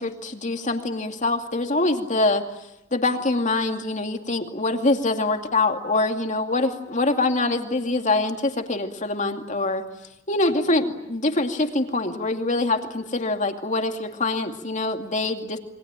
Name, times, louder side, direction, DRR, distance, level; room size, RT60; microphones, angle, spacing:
voice 1, 0.0-2.5 2.9-9.9 10.3-15.6, left 2 dB, 40° left, 5 dB, 2.5 m, -24 dB
28.5 x 23.5 x 9.0 m, 0.85 s
head